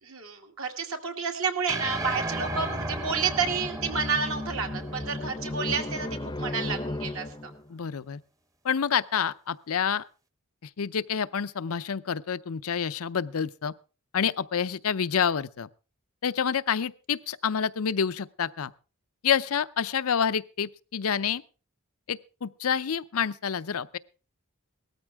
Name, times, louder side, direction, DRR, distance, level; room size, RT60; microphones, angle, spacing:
voice 1, 0.0-6.1 6.4-7.5, right 5 dB, 70° right, 2.2 m, -30 dB
sound 1, 1.7-6.1, right 2 dB, 15° right, 0.9 m, -35 dB
sound 2, 2.1-7.7, left 1 dB, 20° left, 0.7 m, -36 dB
voice 2, 7.7-8.2 8.6-10.1 10.6-13.7 14.1-15.7 16.2-18.7 19.2-21.4 22.1-24.0, left 7 dB, 70° left, 0.6 m, -28 dB
18.0 x 13.5 x 3.5 m
head